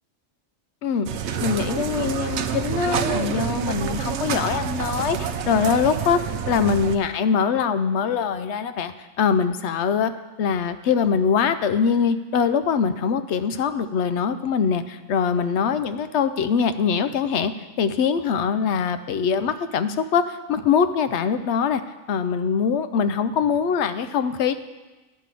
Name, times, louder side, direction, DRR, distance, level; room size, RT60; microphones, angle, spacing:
sound 1, 1.1-7.0, right 7 dB, 65° right, 0.8 m, -27 dB
voice 1, 1.4-6.2 6.5-10.1 10.4-17.5 17.8-21.8 22.1-24.5, left 6 dB, 65° left, 11 dB, 0.8 m, -23 dB
10.5 x 5.5 x 7.5 m, 1.2 s
omnidirectional pair, 1.4 m